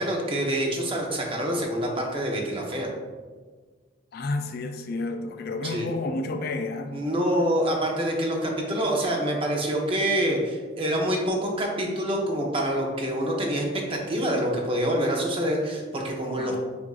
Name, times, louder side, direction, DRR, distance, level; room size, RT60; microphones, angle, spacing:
voice 1, 0.0-2.9 5.6-5.9 6.9-16.6, right 1 dB, 25° right, 0 dB, 0.6 m, -26 dB
voice 2, 4.1-6.9 16.4-16.6, left 2 dB, 50° left, 5 dB, 0.3 m, -31 dB
7.0 x 2.5 x 2.4 m, 1.4 s
head